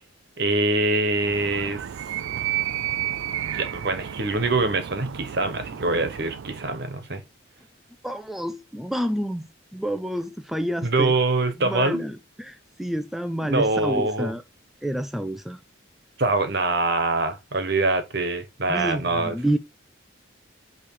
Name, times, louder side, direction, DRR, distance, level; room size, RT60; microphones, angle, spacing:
voice 1, 0.4-1.9 3.4-7.2 10.8-12.1 13.4-14.3 16.2-19.3, right 2 dB, 55° right, 1.3 m, -24 dB
Animal, 1.1-7.0, right 11 dB, 75° right, 0.4 m, -32 dB
voice 2, 8.0-11.2 11.6-14.4 14.8-15.6 18.7-19.6, equal, ahead, 0.3 m, -29 dB
8.8 x 3.3 x 4.7 m
head